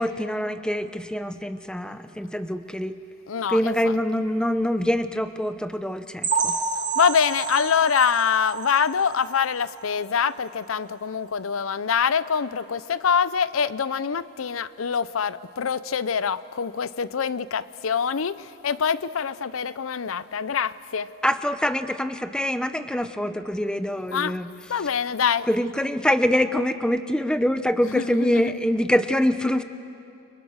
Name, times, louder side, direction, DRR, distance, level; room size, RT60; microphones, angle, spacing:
voice 1, 0.0-3.0 3.5-6.6 21.2-24.5 25.5-29.6, left 1 dB, 5° left, 10 dB, 0.7 m, -24 dB
voice 2, 3.3-4.0 6.9-21.1 24.1-24.4 24.7-25.5 27.8-28.5, left 6 dB, 90° left, 16 dB, 0.6 m, -25 dB
sound 1, 6.2-9.9 10.2-10.4 10.8-10.9 11.3-11.4, right 5 dB, 40° right, 1.8 m, -29 dB
29.5 x 24.5 x 6.5 m, 2.6 s
head